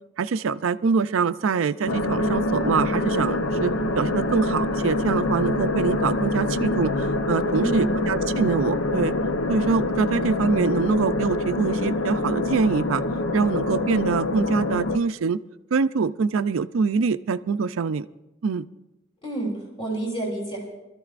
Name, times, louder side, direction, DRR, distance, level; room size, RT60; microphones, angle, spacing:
voice 1, 0.2-9.1 9.5-13.0 13.3-15.4 15.7-18.1 18.4-18.7, right 5 dB, 80° right, 13 dB, 0.4 m, -24 dB
sound 1, 1.9-15.0, left 2 dB, 85° left, 0.7 m, -25 dB
voice 2, 7.5-7.9 19.2-20.7, right 2 dB, 30° left, -2 dB, 3.2 m, -29 dB
24.5 x 13.5 x 2.5 m, 0.96 s
head